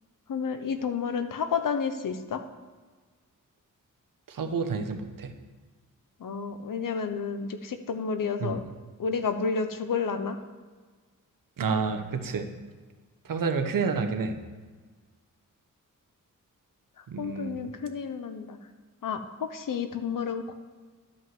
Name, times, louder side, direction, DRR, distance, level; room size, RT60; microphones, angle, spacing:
voice 1, 0.3-2.4 6.2-8.6 9.0-10.4 17.2-18.6 19.0-20.5, left 5 dB, 75° left, 8 dB, 1.0 m, -30 dB
voice 2, 4.3-5.3 8.4-8.7 11.6-12.5 13.2-14.3 17.1-17.7, right 5 dB, 75° right, 7 dB, 1.1 m, -29 dB
12.0 x 5.5 x 7.6 m, 1.4 s
wide cardioid pair, 90°, 33 cm